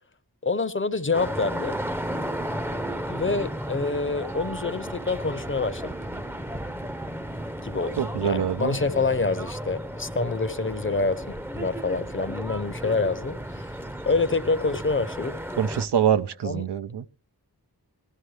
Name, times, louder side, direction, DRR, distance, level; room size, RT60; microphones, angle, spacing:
voice 1, 0.4-1.8 3.1-5.9 7.6-13.7 14.0-15.4 16.4-16.6, left 3 dB, 30° left, 0.7 m, -27 dB
sound 1, 1.1-15.8, right 1 dB, 5° right, 0.6 m, -34 dB
voice 2, 8.0-8.8 15.6-17.0, right 8 dB, 85° right, 0.6 m, -25 dB
16.0 x 12.5 x 3.2 m
wide cardioid pair, 65°, 40 cm